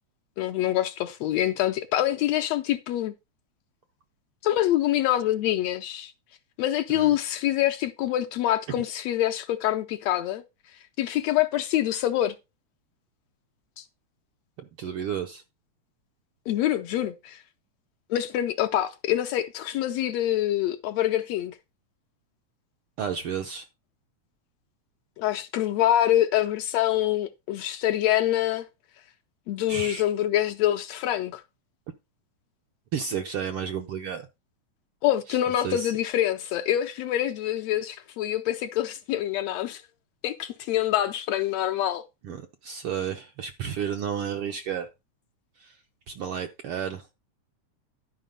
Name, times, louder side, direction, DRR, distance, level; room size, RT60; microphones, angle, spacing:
voice 1, 0.4-3.1 4.4-6.1 6.6-10.4 11.0-12.4 13.8-13.9 16.5-17.4 18.1-21.6 25.2-28.7 29.5-31.4 35.0-39.8 40.2-42.1, left 12 dB, 75° left, 1.6 m, -25 dB
voice 2, 14.8-15.4 23.0-23.6 29.7-30.0 32.9-34.3 35.3-35.4 35.6-35.9 42.2-44.9 45.6-45.8 46.1-47.1, right 8 dB, 70° right, 1.3 m, -32 dB
11.5 x 5.1 x 5.2 m
omnidirectional pair, 3.4 m